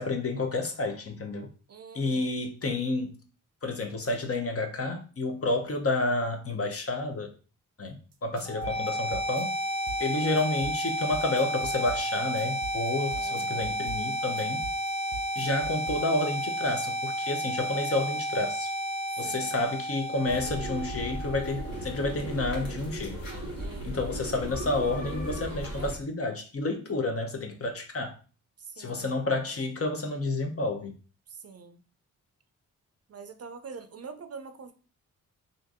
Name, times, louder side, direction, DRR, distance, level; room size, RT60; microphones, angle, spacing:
voice 1, 0.0-1.5 1.9-3.2 3.6-7.3 7.8-9.5 10.0-14.7 15.4-18.7 19.2-23.2 23.8-28.2 28.8-30.9, left 2 dB, 45° left, 0.8 m, -30 dB
voice 2, 1.7-2.3 13.1-13.8 19.1-19.5 23.6-24.2 28.6-29.1 31.3-31.8 33.1-34.7, right 5 dB, 45° right, 0.6 m, -45 dB
sound 1, 8.1-16.0, right 5 dB, 85° right, 0.6 m, -42 dB
sound 2, 8.5-22.4, equal, 20° left, 0.4 m, -32 dB
sound 3, 20.2-26.0, right 1 dB, 80° left, 1.3 m, -36 dB
2.8 x 2.6 x 3.6 m
cardioid pair, 55°, 34 cm